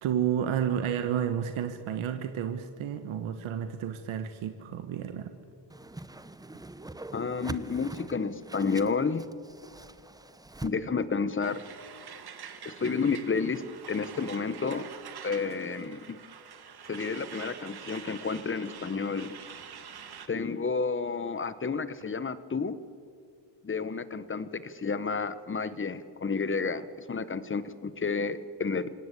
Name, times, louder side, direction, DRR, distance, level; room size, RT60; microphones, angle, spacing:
voice 1, 0.0-5.3, right 9 dB, 85° right, 8 dB, 1.4 m, -31 dB
Whoosh swoosh swish, 5.7-10.7, right 2 dB, 10° right, 0.8 m, -43 dB
voice 2, 7.1-9.3 10.6-11.7 12.6-14.9 15.2-16.2 16.9-19.3 20.3-22.8 23.6-28.9, left 5 dB, 25° left, 15 dB, 1.2 m, -31 dB
Truck, 11.4-20.3, right 7 dB, 50° right, 2.1 m, -46 dB
28.0 x 17.5 x 8.4 m, 2.3 s
cardioid pair, 105°, 47 cm